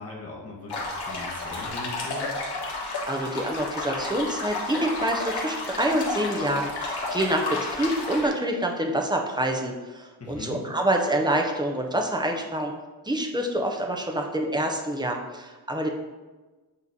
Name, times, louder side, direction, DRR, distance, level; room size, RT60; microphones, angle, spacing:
voice 1, 0.0-2.3 10.2-10.6, left 2 dB, 40° left, -2 dB, 1.4 m, -39 dB
sound 1, 0.7-8.3, left 2 dB, 90° left, 1.6 m, -31 dB
voice 2, 3.1-12.7 13.0-15.9, right 1 dB, 10° right, 2 dB, 0.6 m, -27 dB
8.3 x 3.0 x 4.0 m, 1.2 s
wide cardioid pair, 150°, 38 cm